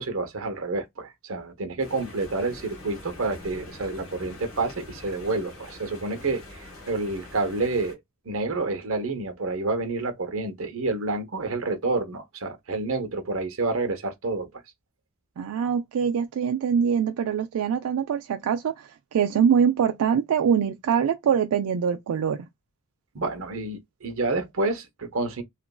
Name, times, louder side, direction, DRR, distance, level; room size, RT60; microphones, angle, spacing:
voice 1, 0.0-8.0 8.2-14.5 23.1-25.4, right 3 dB, 65° right, 0.8 m, -29 dB
sound 1, 1.8-8.0, left 1 dB, 75° left, 1.2 m, -44 dB
voice 2, 15.4-22.5, right 7 dB, 85° right, 0.3 m, -24 dB
2.9 x 2.5 x 2.2 m
head